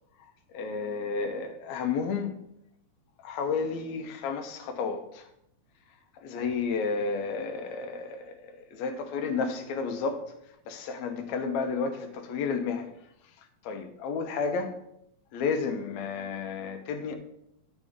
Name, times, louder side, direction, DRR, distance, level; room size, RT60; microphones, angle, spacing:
voice 1, 0.5-2.4 3.2-5.3 6.1-10.3 10.7-12.9 13.6-14.8 15.3-17.2, left 5 dB, 75° left, 5 dB, 2.2 m, -31 dB
11.5 x 5.4 x 3.6 m, 0.77 s
omnidirectional pair, 3.3 m